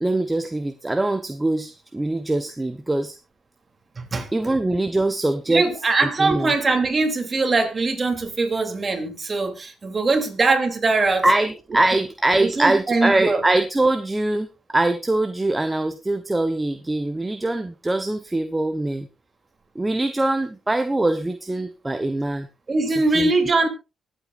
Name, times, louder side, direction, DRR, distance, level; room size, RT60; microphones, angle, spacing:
voice 1, 0.0-3.2 4.3-5.6 6.0-6.5 11.2-19.1 19.7-22.5 22.9-23.3, right 2 dB, 15° right, 0.9 m, -23 dB
voice 2, 4.0-4.5 5.5-11.2 12.4-13.4 22.7-23.7, right 3 dB, 30° right, 3.1 m, -22 dB
24.0 x 8.4 x 2.5 m
cardioid pair, 90°, 0 cm